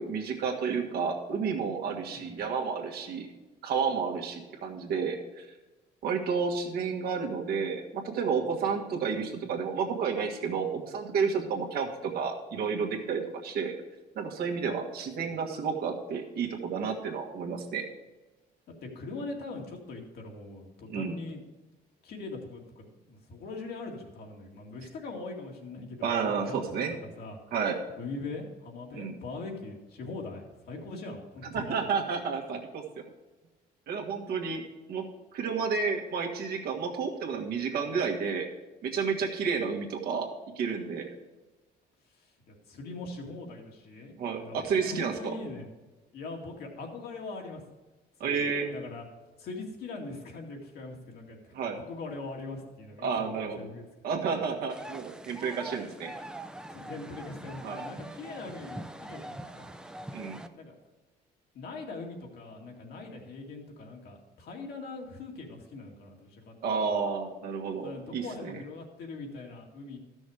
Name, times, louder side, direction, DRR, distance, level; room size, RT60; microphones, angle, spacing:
voice 1, 0.0-3.3 3.6-5.5 6.0-13.7 14.1-17.9 20.9-21.2 26.0-26.9 27.5-27.8 29.0-29.1 31.5-33.0 33.9-34.6 34.9-35.0 35.3-38.5 38.8-40.3 40.6-41.1 44.2-45.3 48.2-48.7 51.5-51.8 53.0-53.7 54.0-56.1 57.6-57.8 60.1-60.4 66.6-68.5, right 5 dB, 65° right, 1 dB, 1.6 m, -31 dB
voice 2, 18.9-21.4 22.0-26.6 27.0-27.4 28.0-31.9 42.2-45.7 46.1-47.6 48.2-49.0 49.4-53.8 56.7-59.6 60.5-60.7 61.5-67.0 67.8-70.0, left 3 dB, 70° left, 0 dB, 2.2 m, -41 dB
sound 1, 54.7-60.5, right 1 dB, 5° right, 0.6 m, -43 dB
13.0 x 6.2 x 4.9 m, 1.2 s
cardioid pair, 110°, 17 cm